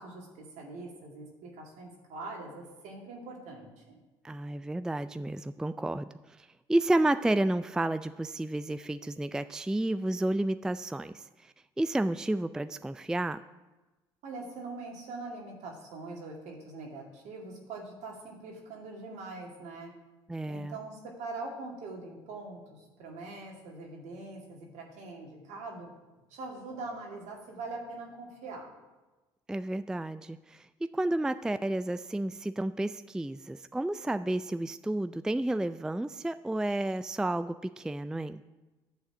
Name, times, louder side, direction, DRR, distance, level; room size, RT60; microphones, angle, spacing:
voice 1, 0.0-4.0 14.2-19.9 20.5-25.9 26.3-28.7, right 3 dB, 65° right, -1 dB, 2.3 m, -43 dB
voice 2, 4.2-13.4 20.3-20.8 29.5-30.7 30.9-38.4, right 1 dB, 5° right, 12 dB, 0.3 m, -31 dB
11.5 x 4.1 x 7.6 m, 1.1 s
hypercardioid pair, 55°, 13 cm